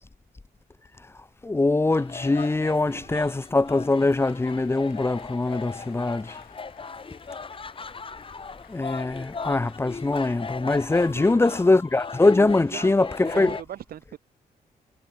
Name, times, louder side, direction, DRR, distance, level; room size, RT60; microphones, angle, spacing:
voice 1, 1.4-6.4 8.7-13.5, left 2 dB, 15° left, 0.6 m, -22 dB
sound 1, 1.9-13.6, left 4 dB, 35° left, 2.0 m, -38 dB
Applause / Crowd, 2.4-12.0, left 9 dB, 70° left, 5.5 m, -58 dB
voice 2, 2.9-3.3 10.9-11.7 12.4-14.2, right 10 dB, 75° right, 2.0 m, -41 dB
cardioid pair, 75°, 15 cm